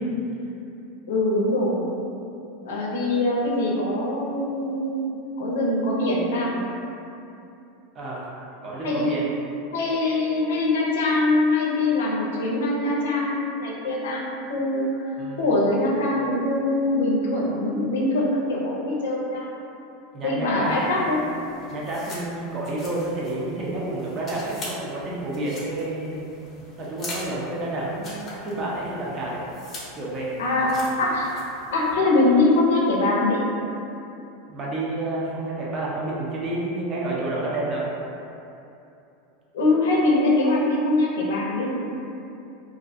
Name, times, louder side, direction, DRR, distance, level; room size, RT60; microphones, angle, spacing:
voice 1, 1.1-1.9 2.6-5.1 5.4-6.6 8.8-9.2 9.7-14.2 14.5-14.9 15.4-19.5 20.2-21.2 30.4-30.7 31.0-31.4 31.7-33.4 39.5-41.7, left 2 dB, 85° left, -3 dB, 0.5 m, -23 dB
voice 2, 7.9-9.2 15.2-15.5 20.1-21.1 21.7-26.3 26.8-29.4 29.9-30.3 34.5-37.9, right 2 dB, 30° right, -5 dB, 0.6 m, -30 dB
sound 1, 20.6-31.9, left 1 dB, 30° left, 0.6 m, -42 dB
2.4 x 2.2 x 2.5 m, 2.8 s
supercardioid pair, 130°, 0 cm